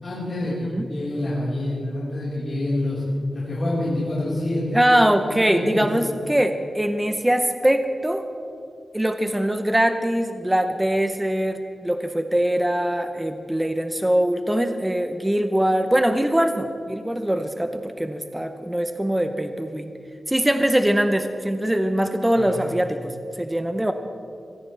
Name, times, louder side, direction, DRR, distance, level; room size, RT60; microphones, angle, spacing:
voice 1, 0.0-3.0 3.3-4.8 5.2-5.9 22.3-22.7, left 1 dB, 40° left, -9 dB, 4.3 m, -27 dB
voice 2, 4.7-8.2 8.9-19.9 20.3-23.9, right 1 dB, 10° right, 7 dB, 0.7 m, -22 dB
23.5 x 16.5 x 3.3 m, 2.5 s
wide cardioid pair, 180°, 0 cm